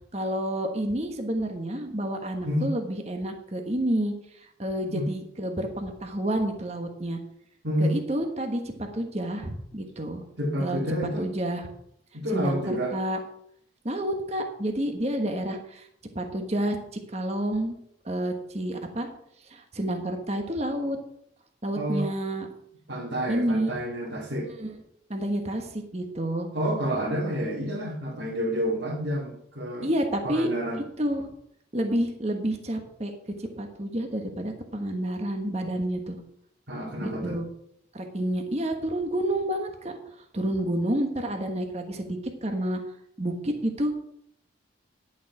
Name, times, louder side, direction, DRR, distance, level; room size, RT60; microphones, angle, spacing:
voice 1, 0.1-7.2 7.8-10.2 10.6-10.8 11.2-11.7 12.3-13.2 13.8-15.9 16.1-17.7 18.0-19.1 19.5-21.0 21.6-22.5 23.3-23.8 24.4-24.8 25.1-26.5 29.8-30.5 31.0-31.3 31.7-33.1 33.4-36.2 37.0-37.5 37.9-40.0 40.3-42.8 43.2-43.9, right 1 dB, 30° right, 4 dB, 1.4 m, -29 dB
voice 2, 7.6-8.0 10.4-11.3 12.1-13.0 21.7-22.1 22.9-24.5 26.5-29.9 30.2-30.8 36.7-37.4, equal, 60° right, -4 dB, 2.4 m, -29 dB
11.0 x 7.3 x 5.9 m, 0.72 s
head